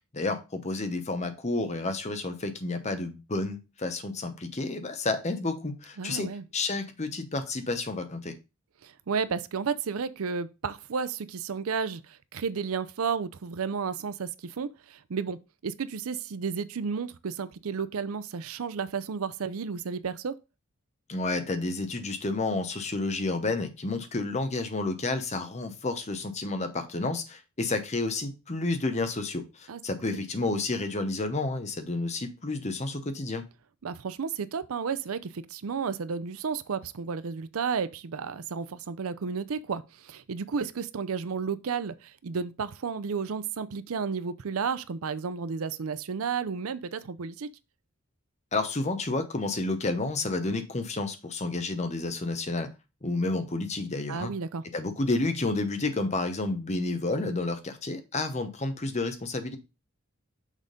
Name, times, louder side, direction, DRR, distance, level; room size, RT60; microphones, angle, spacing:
voice 1, 0.1-8.3 21.1-33.4 48.5-52.7 53.0-54.3 54.7-59.6, left 2 dB, 30° left, 0.9 m, -30 dB
voice 2, 6.0-6.4 8.8-20.4 29.7-29.8 30.1-30.2 33.8-47.5 54.1-54.6, right 5 dB, 85° right, 0.5 m, -32 dB
6.4 x 3.7 x 5.1 m
head